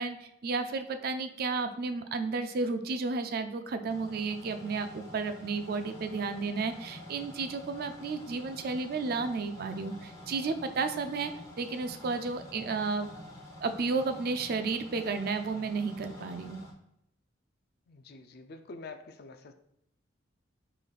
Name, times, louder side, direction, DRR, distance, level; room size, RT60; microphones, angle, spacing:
voice 1, 0.0-11.3 11.6-13.1 13.6-16.6, right 4 dB, 45° right, 9 dB, 0.3 m, -32 dB
sound 1, 3.9-16.7, left 1 dB, 15° left, 0.7 m, -48 dB
voice 2, 17.9-19.5, left 3 dB, 50° left, 8 dB, 0.4 m, -46 dB
5.0 x 3.9 x 2.4 m, 0.79 s
head